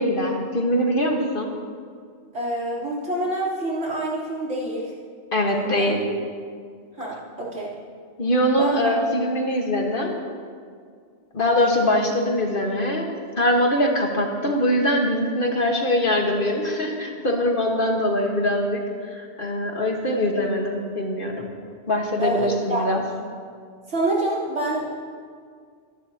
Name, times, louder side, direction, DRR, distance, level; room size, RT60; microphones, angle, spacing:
voice 1, 0.0-1.5 5.3-6.0 8.2-10.1 11.3-21.5 21.9-23.0, left 1 dB, 45° left, 1 dB, 1.6 m, -23 dB
voice 2, 2.3-4.9 5.6-5.9 7.0-7.7 8.6-8.9 22.2-22.8 23.9-24.9, right 1 dB, 75° right, -6 dB, 3.9 m, -26 dB
25.5 x 11.5 x 2.9 m, 2.1 s
omnidirectional pair, 1.3 m